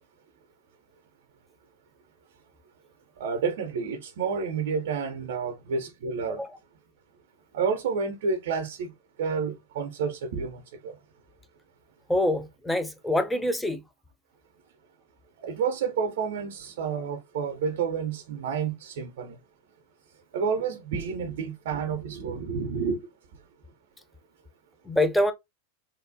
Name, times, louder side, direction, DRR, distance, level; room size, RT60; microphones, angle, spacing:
voice 1, 3.2-6.4 7.5-8.9 9.2-11.0 15.4-19.3 20.3-23.0, right 5 dB, 55° right, 0.4 m, -30 dB
voice 2, 12.1-13.8 24.9-25.3, left 1 dB, 5° left, 0.4 m, -25 dB
2.8 x 2.0 x 2.5 m
figure-of-eight pair, 90°, 0 cm